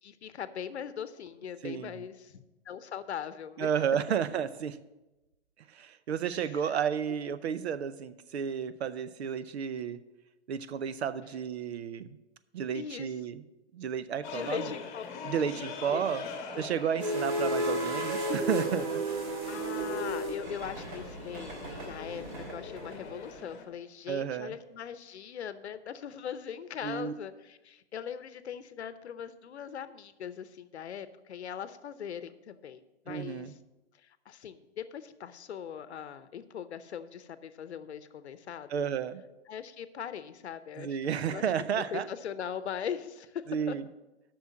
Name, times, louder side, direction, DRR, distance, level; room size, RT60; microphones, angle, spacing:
voice 1, 0.0-3.7 6.3-6.8 7.2-7.3 12.7-13.1 14.3-15.1 15.9-16.7 19.5-22.2 22.5-33.6 34.0-38.9 39.5-41.4 41.7-43.8, left 8 dB, 75° left, 13 dB, 0.8 m, -40 dB
voice 2, 1.6-1.9 3.6-4.8 5.7-10.0 10.5-12.2 12.5-13.4 13.7-14.7 15.2-16.2 16.6-19.0 24.1-24.6 26.8-27.1 33.1-33.5 38.7-39.2 40.8-42.1 43.5-43.8, right 8 dB, 70° right, 14 dB, 0.7 m, -32 dB
sound 1, 14.2-23.6, left 5 dB, 20° left, 1.2 m, -44 dB
Steam Train at Crossing, 17.0-23.3, right 1 dB, 45° right, 2.9 m, -33 dB
8.0 x 6.2 x 7.4 m, 1.0 s
hypercardioid pair, 145°, 34 cm